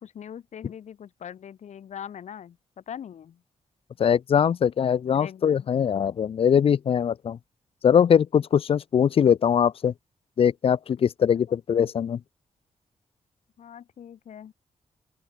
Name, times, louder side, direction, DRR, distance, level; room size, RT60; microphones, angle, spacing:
voice 1, 0.0-3.4 5.1-5.7 11.3-11.6 13.6-14.5, left 9 dB, 75° left, 2.2 m, -42 dB
voice 2, 4.0-7.4 7.8-9.9 10.4-12.2, left 8 dB, 50° left, 0.5 m, -21 dB
open air
wide cardioid pair, 120°, 12 cm